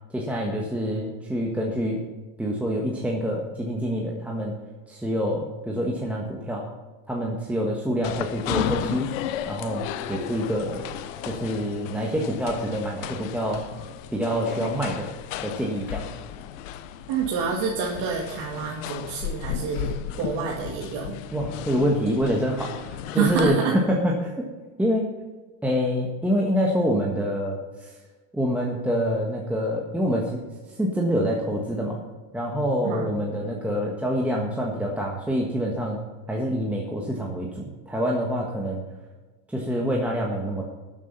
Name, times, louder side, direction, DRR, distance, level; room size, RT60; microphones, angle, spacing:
voice 1, 0.1-2.0 2.4-4.6 4.9-6.7 7.1-9.1 9.5-10.8 11.2-13.7 14.1-15.1 15.4-16.1 21.3-24.5 24.8-25.1 25.6-27.9 28.3-32.0 32.3-36.0 36.3-38.8 39.5-40.7, equal, 5° right, -2 dB, 1.4 m, -26 dB
sound 1, 8.0-23.4, left 10 dB, 80° left, 1.0 m, -34 dB
voice 2, 17.1-21.2 23.2-23.7 32.8-33.1, right 6 dB, 55° right, -3 dB, 2.3 m, -28 dB
12.5 x 7.4 x 5.6 m, 1.3 s
supercardioid pair, 140°, 38 cm